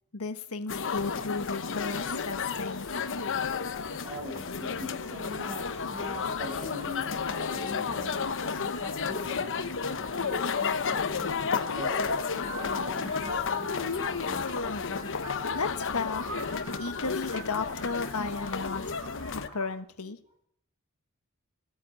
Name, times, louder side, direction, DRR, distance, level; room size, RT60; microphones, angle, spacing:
voice 1, 0.1-2.8 15.2-16.3 16.8-18.8 19.3-20.2, left 4 dB, 80° left, 8 dB, 1.4 m, -34 dB
sound 1, 0.7-19.5, left 5 dB, 60° left, 1.0 m, -32 dB
sound 2, 0.9-19.7, right 2 dB, 70° right, 5.1 m, -48 dB
voice 2, 4.0-11.0 11.5-14.6, left 1 dB, 30° right, -1 dB, 7.8 m, -42 dB
16.5 x 9.5 x 8.7 m, 0.64 s
head